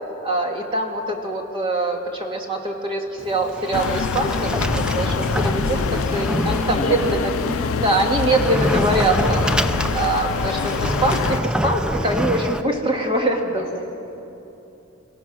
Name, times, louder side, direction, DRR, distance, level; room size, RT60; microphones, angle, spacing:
voice 1, 0.2-5.8 6.1-7.3 7.8-9.5 9.9-13.8, right 1 dB, 25° right, 2 dB, 1.9 m, -23 dB
Sliding door, 3.2-12.6, equal, 5° right, 0.4 m, -26 dB
sound 1, 3.7-11.4, left 6 dB, 80° left, 0.4 m, -26 dB
voice 2, 5.5-8.0 10.0-10.3 13.4-13.8, equal, 35° left, -3 dB, 5.7 m, -31 dB
26.5 x 16.0 x 6.1 m, 2.9 s
head